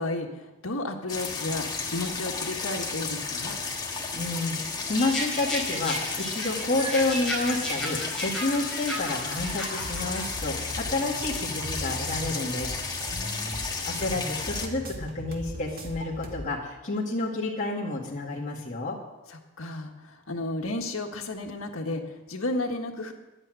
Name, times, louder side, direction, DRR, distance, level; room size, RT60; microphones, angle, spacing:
voice 1, 0.0-3.6 13.1-13.7 19.3-23.1, left 2 dB, 80° left, 3 dB, 1.6 m, -33 dB
sound 1, 1.1-14.7, left 4 dB, 20° left, 1.6 m, -33 dB
voice 2, 4.1-12.7 13.8-19.0, left 2 dB, 35° left, -5 dB, 2.2 m, -30 dB
sound 2, 4.9-10.2, equal, ahead, 4.7 m, -34 dB
sound 3, 9.2-16.4, equal, 45° right, 1.9 m, -39 dB
11.0 x 8.9 x 9.2 m, 1.1 s
head